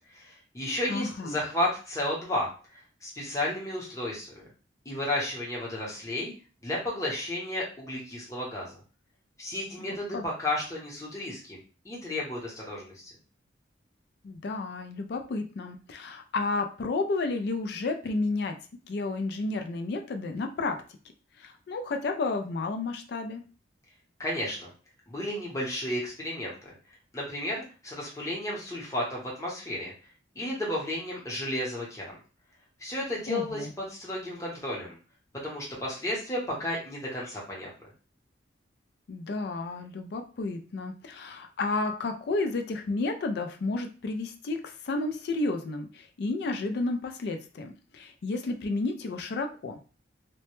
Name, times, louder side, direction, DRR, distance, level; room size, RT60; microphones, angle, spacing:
voice 1, 0.1-2.5 3.0-4.4 4.8-6.3 6.6-8.7 9.4-11.6 11.8-13.0 24.2-24.7 25.1-26.7 27.1-29.9 30.3-32.2 32.8-35.0 35.4-37.7, left 1 dB, 15° left, -4 dB, 0.8 m, -33 dB
voice 2, 0.9-1.4 9.8-10.2 14.2-18.6 18.9-20.8 21.4-23.4 33.3-33.7 39.1-49.8, left 3 dB, 60° left, 5 dB, 0.3 m, -31 dB
2.1 x 2.1 x 2.9 m, 0.36 s
head